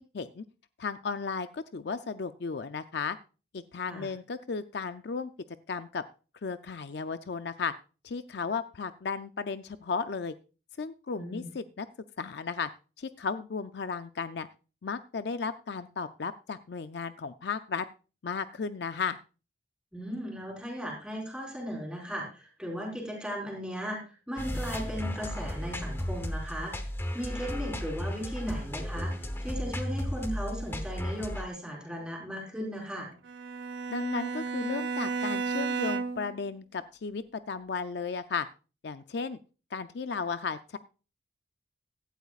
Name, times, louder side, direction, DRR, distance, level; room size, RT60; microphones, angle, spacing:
voice 1, 0.1-0.4 0.8-3.2 3.5-5.3 5.7-6.0 6.4-7.7 8.0-10.3 10.8-11.9 12.2-12.7 13.0-14.5 14.8-17.9 18.2-19.2 33.9-38.5 38.8-39.4 39.7-40.8, left 5 dB, 60° left, 11 dB, 0.5 m, -34 dB
voice 2, 11.2-11.5 19.9-26.7 27.1-33.1, equal, 5° right, 0 dB, 4.1 m, -37 dB
sound 1, 24.4-31.4, equal, 10° left, 1.0 m, -34 dB
Bowed string instrument, 33.2-36.4, right 4 dB, 65° right, 0.9 m, -33 dB
16.5 x 12.0 x 2.4 m, 0.34 s
head